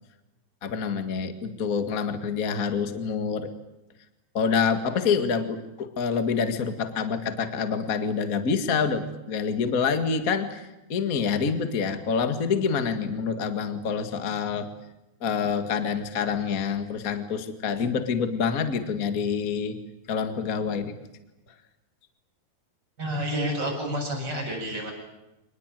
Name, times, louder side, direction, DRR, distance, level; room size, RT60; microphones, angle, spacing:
voice 1, 0.6-3.5 4.3-14.7 15.2-19.8 20.1-20.9, left 6 dB, 40° left, 9 dB, 1.2 m, -27 dB
voice 2, 23.0-24.9, equal, 25° right, 0 dB, 8.3 m, -29 dB
26.0 x 20.5 x 9.2 m, 0.96 s
omnidirectional pair, 4.7 m